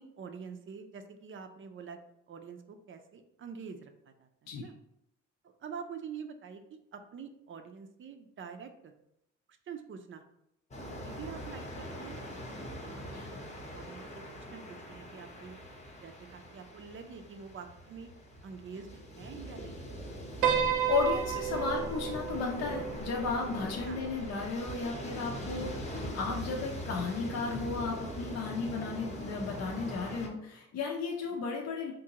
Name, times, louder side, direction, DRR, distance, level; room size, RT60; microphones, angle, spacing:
voice 1, 0.0-2.0 2.3-4.7 5.6-8.9 9.7-10.2 11.0-12.2 12.8-13.4 13.7-15.6 16.0-18.1 18.4-19.7 23.9-24.0 31.3-31.4, right 6 dB, 40° right, 7 dB, 0.5 m, -46 dB
sound 1, 10.7-30.3, equal, 25° left, 0.7 m, -42 dB
Piano, 20.4-24.8, right 8 dB, 90° right, 0.6 m, -32 dB
voice 2, 20.9-31.9, left 4 dB, 60° left, -1 dB, 0.6 m, -34 dB
3.7 x 2.6 x 2.9 m, 0.80 s
cardioid pair, 90°, 30 cm